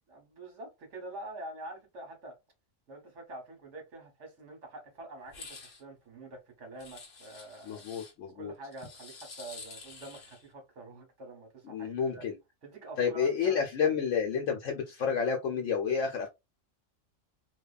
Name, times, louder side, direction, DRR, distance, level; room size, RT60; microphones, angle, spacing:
voice 1, 0.1-2.4 2.9-7.8 8.3-12.2 12.6-14.0, right 2 dB, 70° right, 1.4 m, -46 dB
sound 1, 5.3-5.8 6.8-8.1 8.7-10.5, left 4 dB, 55° left, 0.8 m, -49 dB
voice 2, 7.7-8.5 11.7-12.4 13.0-16.3, left 6 dB, 80° left, 1.0 m, -30 dB
2.7 x 2.3 x 2.3 m
omnidirectional pair, 1.3 m